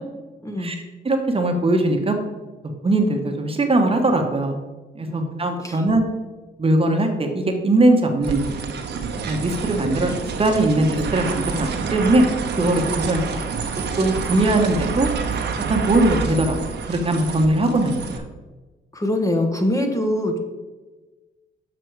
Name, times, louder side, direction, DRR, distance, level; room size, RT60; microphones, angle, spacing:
voice 1, 1.0-2.2 2.8-4.6 4.9-6.0 6.6-8.6 9.3-12.2 12.5-13.4 14.0-15.1 15.7-18.2, right 2 dB, 30° right, 4 dB, 1.1 m, -20 dB
sound 1, 8.2-18.2, right 5 dB, 60° right, 1.0 m, -28 dB
voice 2, 18.9-20.4, left 1 dB, 15° left, 3 dB, 1.0 m, -23 dB
6.4 x 6.0 x 4.6 m, 1.2 s
cardioid pair, 90°, 20 cm